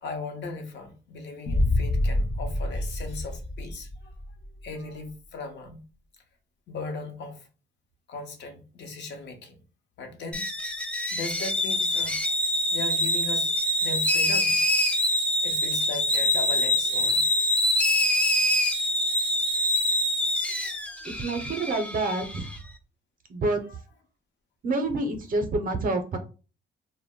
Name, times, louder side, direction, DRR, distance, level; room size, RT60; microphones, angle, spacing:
voice 1, 0.0-4.2 4.6-5.8 6.7-7.5 8.1-9.6 10.0-10.5 11.1-12.4 12.7-13.5 13.8-14.6 15.4-17.4 19.1-19.2 20.5-21.1 23.7-23.8, left 3 dB, 60° left, 0.8 m, -38 dB
sound 1, 1.5-4.4, left 1 dB, 30° left, 0.7 m, -27 dB
sound 2, 10.3-22.6, left 1 dB, 5° left, 0.4 m, -25 dB
voice 2, 21.2-22.5 23.3-23.6 24.6-26.2, right 2 dB, 45° right, 0.6 m, -27 dB
2.1 x 2.1 x 3.6 m
cardioid pair, 90°, 20 cm